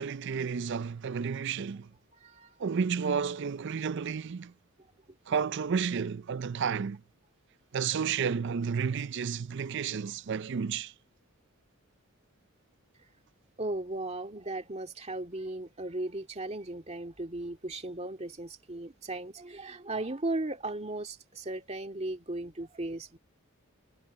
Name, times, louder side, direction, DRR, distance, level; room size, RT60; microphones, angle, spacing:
voice 1, 0.0-1.9 2.6-4.5 5.3-7.0 7.7-10.9, right 6 dB, 55° right, 0.4 m, -31 dB
voice 2, 2.1-2.6 13.6-23.2, right 2 dB, 30° right, 2.1 m, -36 dB
head